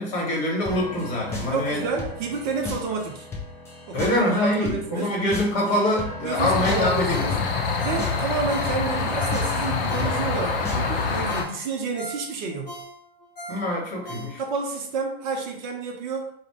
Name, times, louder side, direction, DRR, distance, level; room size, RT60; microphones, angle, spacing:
voice 1, 0.0-1.8 3.9-7.5 13.5-14.4, left 1 dB, 45° left, -3 dB, 1.3 m, -25 dB
sound 1, 0.7-11.3, left 3 dB, 10° left, 0.3 m, -36 dB
voice 2, 1.5-3.3 3.9-5.1 6.2-7.3 7.8-12.8 14.4-16.3, right 4 dB, 50° right, 2 dB, 0.5 m, -30 dB
sound 2, 6.4-11.4, left 4 dB, 60° left, 0.6 m, -26 dB
Ringtone, 7.1-10.5 10.9-11.0 11.3-14.7 15.1-15.2, right 1 dB, 30° left, 1.2 m, -40 dB
2.4 x 2.1 x 3.0 m, 0.66 s
figure-of-eight pair, 100°, 32 cm